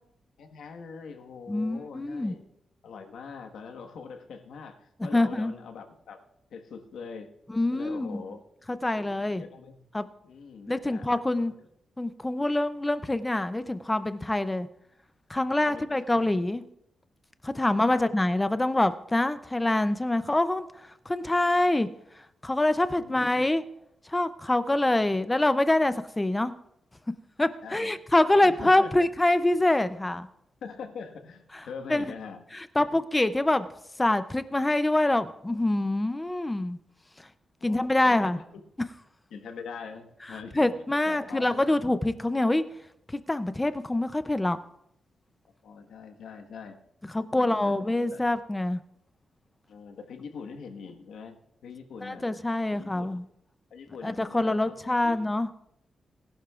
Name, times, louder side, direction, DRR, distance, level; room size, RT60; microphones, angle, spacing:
voice 1, 0.4-2.5 2.8-6.2 6.5-7.3 7.7-8.4 8.9-9.8 10.2-11.1 11.3-11.5 15.7-15.9 17.9-18.0 22.9-23.3 24.8-25.1 27.6-27.9 28.4-28.9 30.6-32.4 37.6-38.4 39.3-40.8 41.0-41.6 45.6-46.8 47.3-48.2 49.7-52.2 52.7-53.1 53.7-55.2, left 5 dB, 85° left, 5 dB, 1.4 m, -43 dB
voice 2, 1.5-2.4 5.1-5.5 7.5-8.2 8.7-9.4 9.9-10.1 10.7-11.5 12.0-14.7 15.3-16.6 17.4-20.7 21.1-21.9 22.4-23.6 24.1-26.5 27.4-30.3 31.9-32.0 32.5-33.7 34.0-36.8 37.6-38.4 40.5-42.6 43.1-44.6 47.1-48.8 52.0-53.2 54.0-55.5, left 1 dB, 10° left, 12 dB, 0.5 m, -25 dB
19.5 x 11.5 x 2.4 m, 0.77 s
wide cardioid pair, 175°, 0 cm